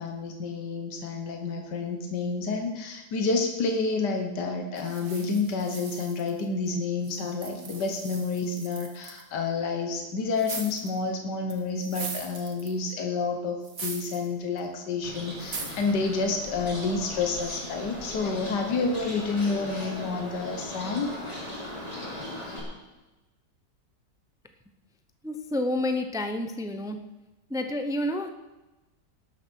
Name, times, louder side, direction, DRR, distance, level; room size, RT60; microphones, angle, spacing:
voice 1, 0.0-21.2, left 4 dB, 85° left, 4 dB, 1.8 m, -29 dB
sound 1, 4.8-6.7 7.0-9.2 10.4-11.0 11.5-12.9 13.6-14.3 14.6-14.7 15.4-15.9, right 4 dB, 55° right, 1.9 m, -40 dB
Bird, 15.0-22.6, left 1 dB, 20° left, 3.5 m, -38 dB
voice 2, 25.2-27.0 27.5-28.3, left 1 dB, 5° right, 7 dB, 0.3 m, -29 dB
18.0 x 7.3 x 6.3 m, 1.1 s
omnidirectional pair, 1.8 m